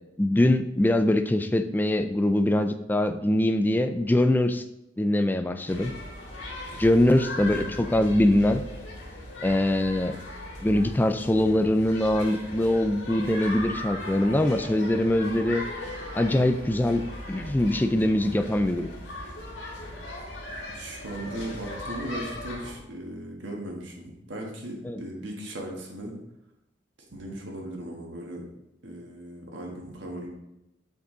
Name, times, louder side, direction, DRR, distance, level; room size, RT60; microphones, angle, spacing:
voice 1, 0.2-4.6 5.0-5.9 6.8-8.6 9.4-10.2 10.6-15.6 16.2-18.9 24.8-25.0, left 1 dB, 10° left, 9 dB, 0.3 m, -23 dB
sound 1, 5.7-22.7, left 1 dB, 80° left, 1.9 m, -38 dB
voice 2, 7.4-7.7 20.7-26.1 27.1-28.4 28.8-30.3, right 1 dB, 85° right, 0 dB, 1.6 m, -37 dB
6.9 x 5.5 x 3.8 m, 0.88 s
head